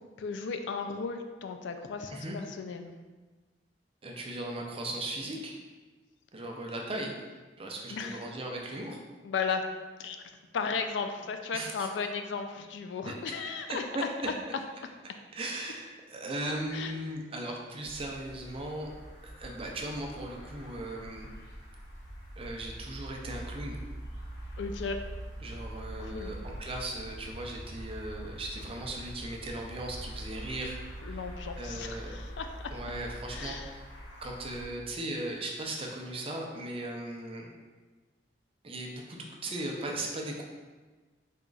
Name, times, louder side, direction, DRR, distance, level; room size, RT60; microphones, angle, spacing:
voice 1, 0.2-2.9 7.9-8.2 9.2-9.7 10.0-14.1 16.7-16.9 24.6-25.0 26.0-26.3 31.0-32.5 33.3-33.7, left 5 dB, 75° left, 6 dB, 0.4 m, -35 dB
voice 2, 4.0-5.6 6.3-7.2 7.6-9.0 11.5-11.9 13.1-14.3 15.3-18.9 19.2-21.3 22.4-23.8 25.4-31.2 31.6-32.2 32.7-33.8 34.2-37.5 38.6-40.4, right 1 dB, 30° right, 0 dB, 0.5 m, -38 dB
sound 1, 17.8-34.7, equal, 90° left, 1.2 m, -43 dB
4.2 x 2.4 x 3.8 m, 1.3 s
head